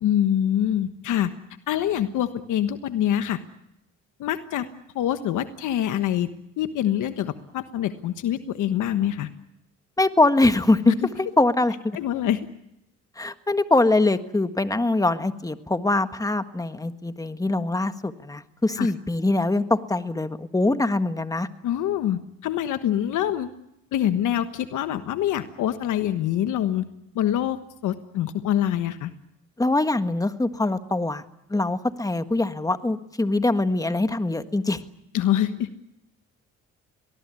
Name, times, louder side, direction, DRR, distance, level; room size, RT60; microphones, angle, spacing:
voice 1, 0.0-1.3 1.7-3.4 4.2-4.7 4.9-6.3 6.6-9.3 10.9-11.0 11.9-12.5 18.8-18.9 21.6-23.5 23.9-26.9 27.1-29.1 35.1-35.8, left 11 dB, 85° left, 10 dB, 1.3 m, -25 dB
voice 2, 10.0-12.0 13.2-21.5 29.6-31.2 31.5-34.8, left 2 dB, 10° left, 10 dB, 1.5 m, -23 dB
24.0 x 19.5 x 9.7 m, 0.84 s
cardioid pair, 90°, 30 cm